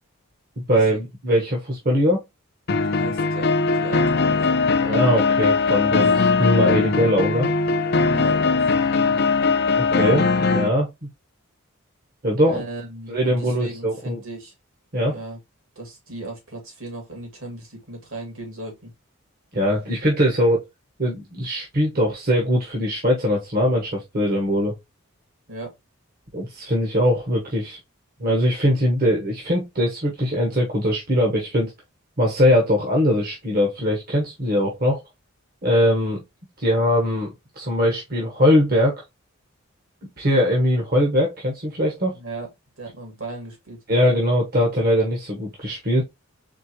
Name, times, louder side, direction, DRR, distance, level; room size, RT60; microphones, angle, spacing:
voice 1, 0.7-2.2 4.8-7.5 9.8-11.1 12.2-12.6 13.1-14.2 14.9-15.2 19.5-20.6 21.0-24.7 26.3-27.8 28.2-31.7 32.2-35.0 35.6-36.2 36.6-39.0 40.2-42.2 43.9-46.0, equal, 45° right, 1.1 m, -21 dB
sound 1, 2.7-10.7, left 4 dB, 50° left, 0.5 m, -20 dB
voice 2, 2.7-4.5 7.9-8.4 8.8-9.2 12.5-14.5 15.1-15.4 15.8-18.9 25.5-25.7 42.1-42.5 42.8-43.8, right 2 dB, 70° right, 2.5 m, -36 dB
4.4 x 3.6 x 2.9 m
head